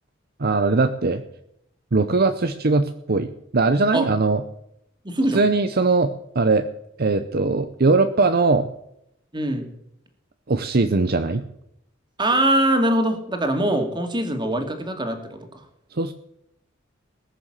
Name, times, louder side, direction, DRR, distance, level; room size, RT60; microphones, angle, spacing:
voice 1, 0.4-1.2 1.9-4.4 5.3-6.7 7.0-8.7 10.5-11.4 15.9-16.1, right 3 dB, 50° right, 9 dB, 0.8 m, -20 dB
voice 2, 5.0-5.4 9.3-9.7 12.2-15.7, right 1 dB, 25° right, 4 dB, 2.5 m, -22 dB
20.0 x 6.9 x 7.5 m, 0.78 s
head